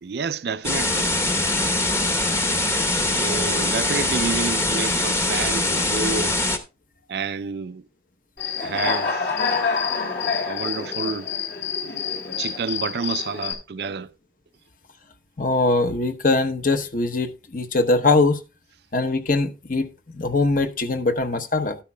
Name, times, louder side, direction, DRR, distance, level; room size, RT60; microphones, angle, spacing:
voice 1, 0.0-1.1 3.0-6.4 7.1-7.8 8.6-9.4 10.5-11.3 12.4-14.1, right 5 dB, 65° right, 0.4 m, -29 dB
sound 1, 0.6-6.6, left 2 dB, 15° left, 0.9 m, -22 dB
Human voice / Cricket, 8.4-13.5, left 5 dB, 70° left, 3.0 m, -27 dB
voice 2, 15.4-18.4 18.9-21.8, left 3 dB, 50° left, 0.9 m, -22 dB
12.5 x 10.0 x 2.2 m
head